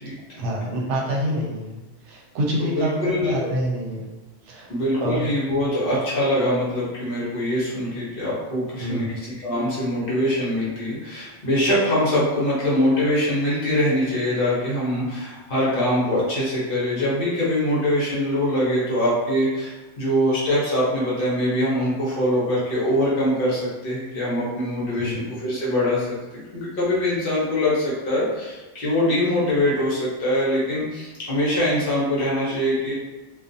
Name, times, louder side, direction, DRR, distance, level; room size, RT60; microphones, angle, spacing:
voice 1, 0.3-1.8 2.0-4.0 4.4-4.7 5.0-5.2 8.8-9.1 25.0-25.2, equal, 70° right, -2 dB, 0.8 m, -26 dB
voice 2, 2.6-3.5 4.7-26.1 26.3-32.9, left 1 dB, 50° left, -7 dB, 0.9 m, -23 dB
2.4 x 2.2 x 2.6 m, 1.1 s
omnidirectional pair, 1.3 m